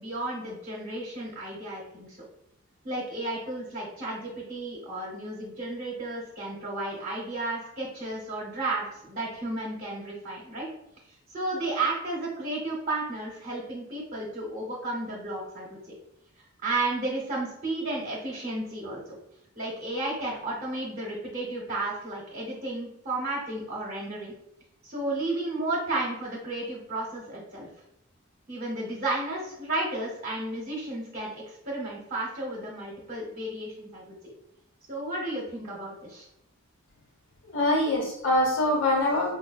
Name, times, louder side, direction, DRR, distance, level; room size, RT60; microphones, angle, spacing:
voice 1, 0.0-2.2 2.8-10.7 11.3-15.8 16.6-19.0 19.6-24.3 24.8-27.7 28.5-34.2 34.9-36.3, right 2 dB, 45° right, -4 dB, 0.8 m, -33 dB
voice 2, 37.4-39.3, left 1 dB, 55° left, -3 dB, 1.1 m, -24 dB
4.7 x 2.2 x 2.3 m, 0.82 s
head